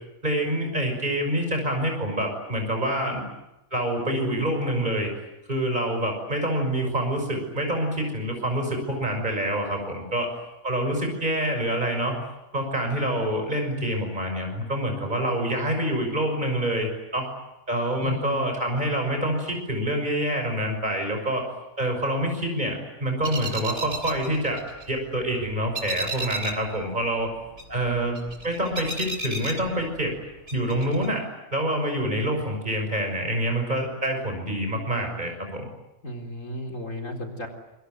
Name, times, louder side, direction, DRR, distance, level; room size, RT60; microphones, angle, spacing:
voice 1, 0.2-3.2 3.7-5.1 5.5-10.3 10.6-12.2 12.5-17.3 17.7-21.5 21.8-24.6 24.9-27.3 27.7-30.1 30.5-31.3 31.5-35.7, right 1 dB, 35° right, 3 dB, 6.3 m, -26 dB
voice 2, 18.0-18.5 36.0-37.5, left 1 dB, 70° left, 3 dB, 4.5 m, -34 dB
sound 1, 23.2-25.2 25.5-26.7 27.0-30.2 30.5-31.1, right 2 dB, 55° right, 3.7 m, -34 dB
27.0 x 23.0 x 9.3 m, 0.93 s
omnidirectional pair, 1.4 m